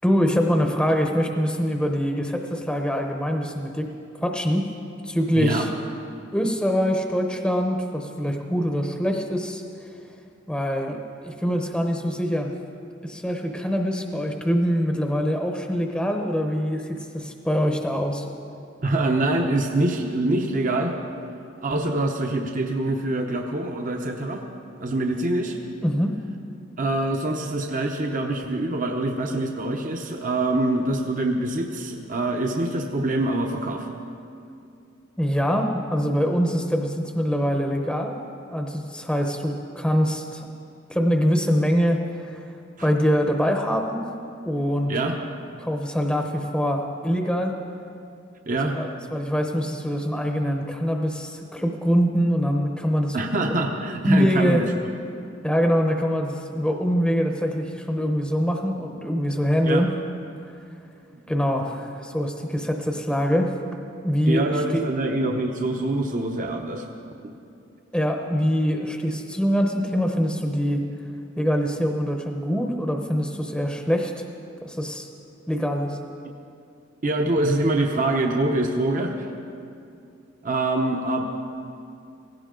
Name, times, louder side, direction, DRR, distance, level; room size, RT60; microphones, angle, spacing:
voice 1, 0.0-3.9 4.2-4.7 5.0-5.7 6.3-9.9 10.5-12.5 13.0-18.3 25.8-26.2 35.2-38.2 38.5-40.5 40.9-42.5 42.8-44.1 44.4-44.9 45.6-47.6 48.6-53.5 54.0-54.6 55.4-59.9 61.3-63.5 64.0-64.8 67.9-70.8 71.4-74.2 74.6-75.1 75.5-76.0, equal, 5° left, 3 dB, 0.8 m, -24 dB
voice 2, 5.4-5.7 18.8-20.9 21.6-24.4 24.8-25.6 26.8-33.9 42.8-42.9 44.9-45.2 48.5-48.8 53.1-54.7 59.7-59.9 64.3-66.9 67.2-67.3 77.0-79.3 80.4-81.2, right 2 dB, 40° right, 3 dB, 0.8 m, -25 dB
17.0 x 16.5 x 3.8 m, 2.5 s
head